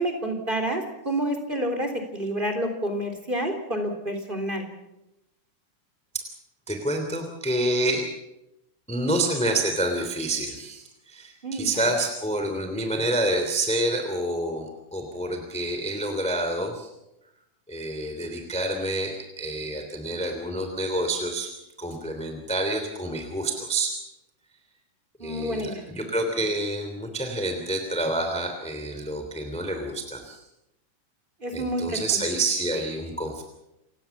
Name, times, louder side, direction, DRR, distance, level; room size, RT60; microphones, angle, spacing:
voice 1, 0.0-4.6 11.4-11.9 25.2-25.8 31.4-32.0, right 1 dB, 15° right, 5 dB, 3.5 m, -29 dB
voice 2, 6.7-8.1 8.9-16.9 17.7-21.5 21.8-24.0 25.2-30.4 31.5-33.4, right 1 dB, ahead, 5 dB, 2.6 m, -28 dB
29.0 x 17.5 x 7.2 m, 0.91 s
omnidirectional pair, 3.5 m